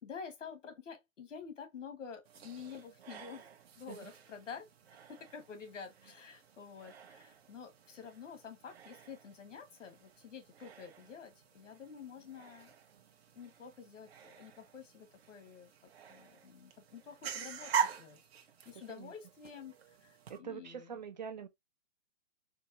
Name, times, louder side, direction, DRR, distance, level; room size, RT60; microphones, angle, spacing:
voice 1, 0.0-3.5 3.8-4.7 5.1-12.7 13.3-15.7 16.1-18.2 18.6-21.0, left 6 dB, 90° left, 1.5 m, -49 dB
sound 1, 2.2-20.4, right 7 dB, 55° right, 0.9 m, -44 dB
voice 2, 20.3-21.5, right 7 dB, 35° right, 0.5 m, -44 dB
4.6 x 2.2 x 2.7 m
hypercardioid pair, 160°, 37 cm